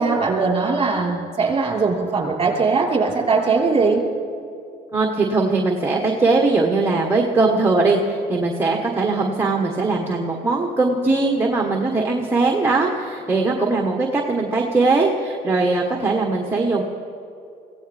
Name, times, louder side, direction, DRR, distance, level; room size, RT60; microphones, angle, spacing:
voice 1, 0.0-4.0, right 4 dB, 30° right, -1 dB, 4.4 m, -20 dB
voice 2, 4.9-16.8, right 3 dB, 15° right, -1 dB, 1.6 m, -20 dB
24.0 x 16.5 x 3.6 m, 2.6 s
cardioid pair, 110°, 17 cm